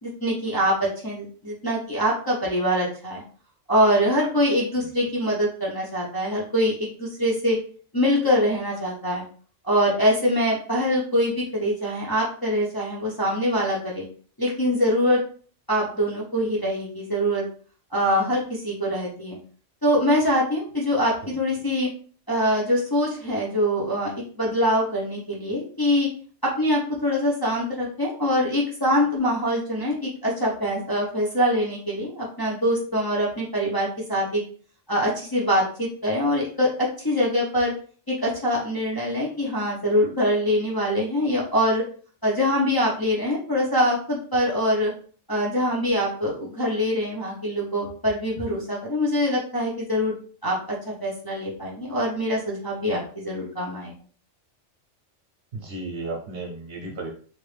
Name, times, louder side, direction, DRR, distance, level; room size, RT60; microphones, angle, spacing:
voice 1, 0.0-3.2 3.7-7.6 7.9-9.2 9.6-14.0 14.4-15.2 15.7-17.4 17.9-19.4 19.8-21.9 22.3-26.1 26.4-34.4 34.9-37.7 38.1-41.8 42.2-44.9 45.3-50.2 50.4-53.9, equal, 25° left, -5 dB, 0.6 m, -24 dB
voice 2, 55.5-57.1, right 2 dB, 55° right, 1 dB, 0.9 m, -34 dB
2.9 x 2.6 x 3.3 m, 0.43 s
omnidirectional pair, 1.3 m